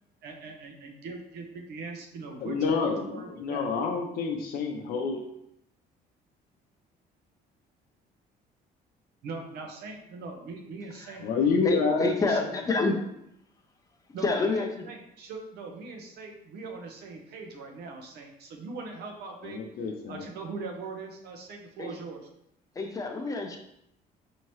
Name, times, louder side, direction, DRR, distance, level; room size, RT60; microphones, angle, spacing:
voice 1, 0.2-2.6 2.8-3.7 9.2-11.3 11.6-11.7 12.0-12.4 14.1-19.6 20.1-22.2, right 4 dB, 70° right, 2 dB, 0.7 m, -40 dB
voice 2, 2.4-5.3 11.2-12.1 19.4-20.3, left 5 dB, 65° left, 3 dB, 0.6 m, -28 dB
voice 3, 11.6-13.0 14.2-14.9 21.8-21.9 22.7-23.6, left 3 dB, 20° left, 3 dB, 0.6 m, -28 dB
4.4 x 2.8 x 3.1 m, 0.78 s
cardioid pair, 110°, 17 cm